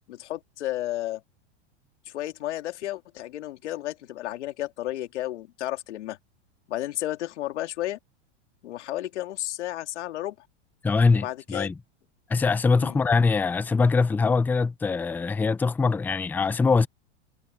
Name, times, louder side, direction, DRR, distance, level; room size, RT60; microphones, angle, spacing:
voice 1, 0.1-1.2 2.1-6.2 6.7-8.0 8.6-10.4 11.1-11.7 12.8-13.0, left 14 dB, 80° left, 2.6 m, -32 dB
voice 2, 10.8-11.8 12.3-16.9, left 4 dB, 5° left, 0.4 m, -23 dB
supercardioid pair, 130°, 34 cm